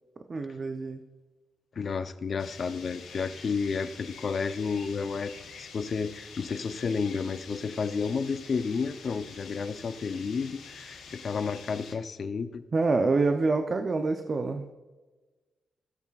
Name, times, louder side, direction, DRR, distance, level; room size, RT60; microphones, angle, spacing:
voice 1, 0.3-1.0 12.7-14.6, right 3 dB, 45° right, 6 dB, 0.7 m, -26 dB
voice 2, 1.8-12.6, left 5 dB, 55° left, 10 dB, 0.6 m, -31 dB
sound 1, 2.4-11.9, left 5 dB, 85° left, 3.0 m, -47 dB
16.0 x 8.1 x 2.5 m, 1.2 s
cardioid pair, 75°, 0 cm